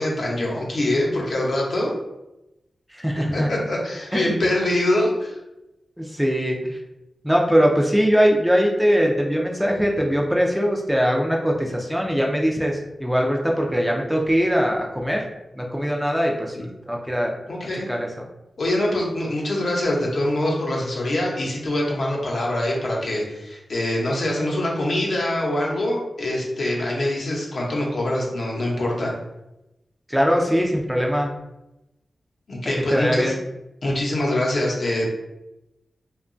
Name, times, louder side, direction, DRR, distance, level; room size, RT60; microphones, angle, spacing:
voice 1, 0.0-2.0 3.2-5.4 16.6-16.7 17.5-17.9 18.6-29.1 32.5-33.3 33.8-35.1, left 1 dB, 65° left, -2 dB, 0.7 m, -24 dB
voice 2, 2.9-3.5 4.1-4.4 6.0-6.8 7.2-15.2 15.6-17.3 17.9-18.1 30.1-31.3 32.6-33.4, equal, 5° right, 0 dB, 0.4 m, -21 dB
2.8 x 2.2 x 2.5 m, 0.93 s
wide cardioid pair, 85°, 0 cm